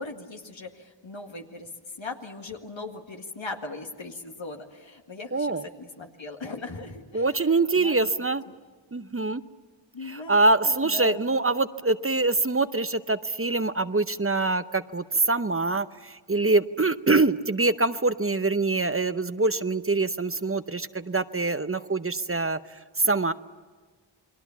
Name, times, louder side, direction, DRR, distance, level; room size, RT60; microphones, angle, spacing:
voice 1, 0.0-8.0 8.5-8.6 9.9-11.2, left 3 dB, 85° left, 3 dB, 2.1 m, -39 dB
voice 2, 5.3-5.6 7.1-8.4 8.9-9.4 10.1-23.3, right 3 dB, 30° right, 12 dB, 0.8 m, -24 dB
29.5 x 22.0 x 7.2 m, 1.4 s
wide cardioid pair, 45°, 45 cm